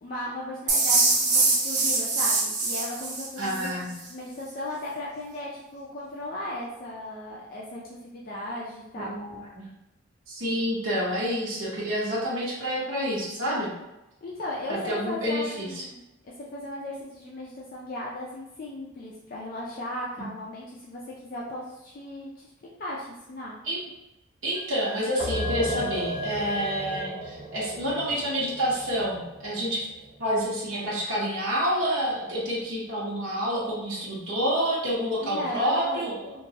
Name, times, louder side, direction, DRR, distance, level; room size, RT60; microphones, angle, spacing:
voice 1, 0.0-3.7 4.1-9.2 14.2-16.0 16.4-22.5 22.8-23.5 35.2-36.3, left 1 dB, 45° left, -5 dB, 0.4 m, -36 dB
sound 1, 0.7-3.7, right 3 dB, 40° right, 0.5 m, -23 dB
voice 2, 3.4-3.9 9.0-9.3 9.5-9.7 10.3-13.7 14.7-15.8 23.6-23.8 24.4-29.9 30.2-36.3, equal, 85° right, -6 dB, 0.7 m, -28 dB
Wind instrument woodwind instrument, 24.5-27.1, left 3 dB, 25° left, 0.9 m, -39 dB
sound 2, 25.2-30.5, equal, 20° right, 1.4 m, -35 dB
2.9 x 2.2 x 2.7 m, 0.96 s
head